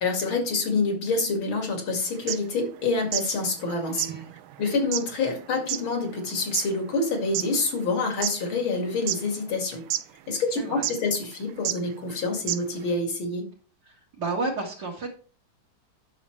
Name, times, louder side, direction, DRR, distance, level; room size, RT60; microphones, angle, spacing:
voice 1, 0.0-4.1 4.6-9.8 10.3-13.5, left 3 dB, 75° left, 2 dB, 3.0 m, -27 dB
sound 1, 2.2-3.3 3.6-3.7 4.0-7.5 8.0-8.8 9.1-9.6 9.9-10.0 10.8-11.1 11.6-11.8 12.1-12.2 12.5-12.8, right 13 dB, 85° right, 1.5 m, -30 dB
voice 2, 3.9-4.3 10.6-10.9 13.8-15.1, right 3 dB, 55° right, -3 dB, 2.4 m, -32 dB
9.8 x 6.9 x 3.2 m, 0.39 s
omnidirectional pair, 2.2 m